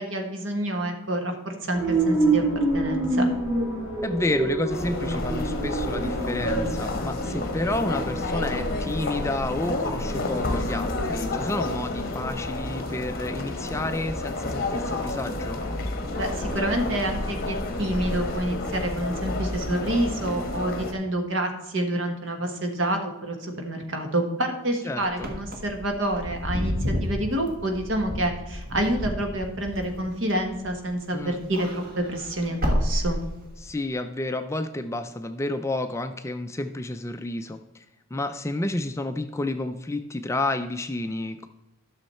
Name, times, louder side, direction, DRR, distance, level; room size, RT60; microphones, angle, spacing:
voice 1, 0.0-2.4 2.7-3.3 16.2-33.2, right 1 dB, 60° right, 4 dB, 1.4 m, -28 dB
sound 1, 1.7-18.3, right 2 dB, 10° right, 2.8 m, -30 dB
voice 2, 4.0-15.6 24.8-25.3 31.1-31.4 33.6-37.8 38.1-41.5, left 2 dB, 15° left, 8 dB, 0.3 m, -30 dB
sound 2, 4.7-20.9, left 2 dB, 45° left, 1.1 m, -30 dB
Wind / Car, 25.1-30.9 31.3-33.7, equal, 45° right, 1.4 m, -30 dB
12.0 x 6.4 x 4.3 m, 0.97 s
head